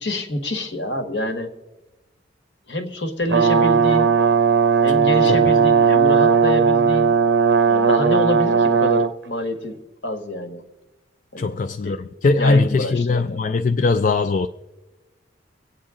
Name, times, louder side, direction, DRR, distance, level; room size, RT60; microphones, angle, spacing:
voice 1, 0.0-1.5 2.7-4.1 4.8-7.1 7.7-10.6 11.3-11.6 11.8-12.0 12.4-13.4, left 1 dB, 65° left, 1.5 m, -27 dB
Brass instrument, 3.3-9.1, right 6 dB, 65° right, 0.6 m, -17 dB
voice 2, 11.4-14.5, left 3 dB, 45° left, 0.4 m, -20 dB
24.5 x 8.8 x 3.7 m
head